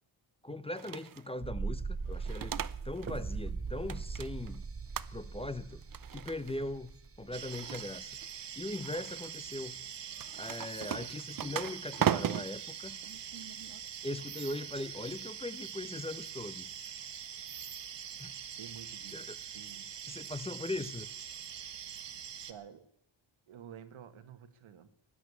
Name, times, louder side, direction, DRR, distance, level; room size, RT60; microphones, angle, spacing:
voice 1, 0.4-4.6 5.1-5.8 6.1-6.9 7.2-8.1 8.6-9.8 10.4-13.0 14.0-16.9 18.2-18.3 19.1-19.4 20.1-21.1, left 2 dB, 15° left, 14 dB, 0.6 m, -40 dB
sound 1, 0.8-1.3 2.1-3.2 3.5-4.6 4.9-5.5 5.8-6.6 7.3-8.3 8.8-9.3 10.1-13.8, right 9 dB, 45° right, 0.7 m, -37 dB
sound 2, 1.4-8.2 8.5-8.6, right 4 dB, 30° right, 1.3 m, -40 dB
sound 3, 7.3-22.5, right 8 dB, 60° right, 1.4 m, -44 dB
voice 2, 18.6-19.2 19.5-19.9 22.5-22.9 23.5-24.9, right 9 dB, 90° right, 11 dB, 1.7 m, -50 dB
16.5 x 10.5 x 8.4 m, 0.78 s
wide cardioid pair, 115°, 47 cm